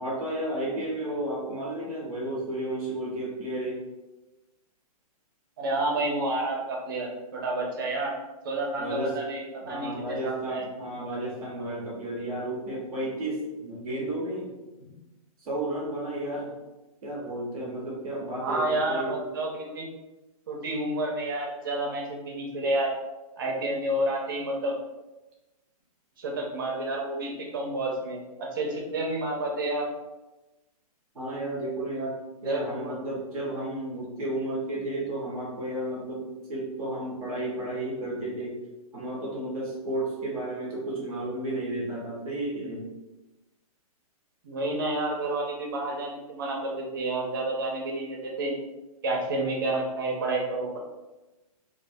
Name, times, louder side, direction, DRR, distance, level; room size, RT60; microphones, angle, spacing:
voice 1, 0.0-3.8 8.8-9.2 9.6-14.5 14.8-14.9 15.4-16.5 17.0-19.2 31.1-36.2 36.5-38.6 38.9-42.8, right 1 dB, ahead, -20 dB, 0.3 m, -32 dB
voice 2, 5.6-8.1 8.4-10.6 18.4-19.9 20.5-22.9 23.4-24.7 26.2-29.9 32.4-32.9 44.4-48.5 49.0-50.8, right 2 dB, 35° right, -1 dB, 0.6 m, -30 dB
3.1 x 2.4 x 3.5 m, 1.1 s
hypercardioid pair, 175°, 20 cm